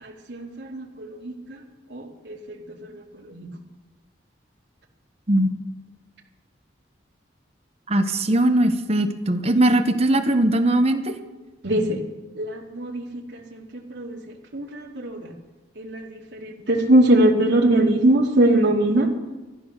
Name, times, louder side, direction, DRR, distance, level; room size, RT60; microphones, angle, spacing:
voice 1, 0.0-1.3 1.9-2.4 3.3-3.5 11.6-12.0 12.4-13.6 13.9-14.2 14.5-15.3 15.8-19.1, right 1 dB, 70° right, 0 dB, 2.4 m, -21 dB
voice 2, 7.9-11.1, right 1 dB, 35° right, 8 dB, 0.9 m, -20 dB
14.5 x 11.5 x 6.4 m, 1.2 s
head